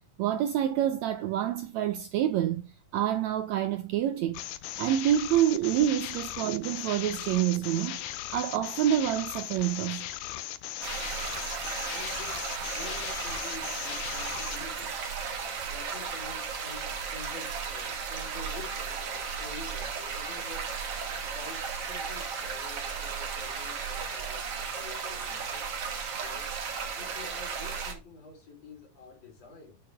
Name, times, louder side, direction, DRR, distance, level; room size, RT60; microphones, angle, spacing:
voice 1, 0.2-2.6 2.9-4.4 4.8-8.0 8.3-10.0, right 11 dB, 75° right, 1.7 m, -27 dB
sound 1, 4.3-14.7, left 13 dB, 80° left, 2.3 m, -38 dB
sound 2, 10.8-27.9, right 6 dB, 50° right, 2.5 m, -35 dB
voice 2, 11.9-15.0 15.6-20.8 21.2-25.7 26.2-26.5 26.9-29.8, left 4 dB, 50° left, 4.8 m, -48 dB
10.0 x 7.1 x 3.4 m
omnidirectional pair, 3.7 m